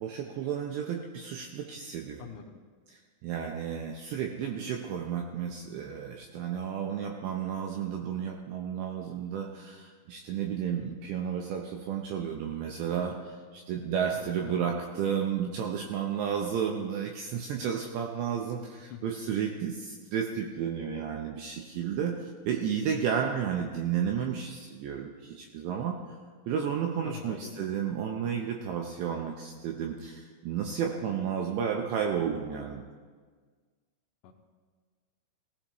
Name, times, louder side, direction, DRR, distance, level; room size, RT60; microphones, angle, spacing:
voice 1, 0.0-2.3 2.9-22.2 22.5-26.0 26.5-32.8, right 8 dB, 80° right, 2 dB, 2.6 m, -32 dB
voice 2, 2.2-2.6 14.1-14.6 18.6-18.7 18.9-19.0 27.0-27.7 34.2-34.3, left 8 dB, 80° left, -1 dB, 2.7 m, -45 dB
18.0 x 14.0 x 3.1 m, 1.5 s
omnidirectional pair, 5.8 m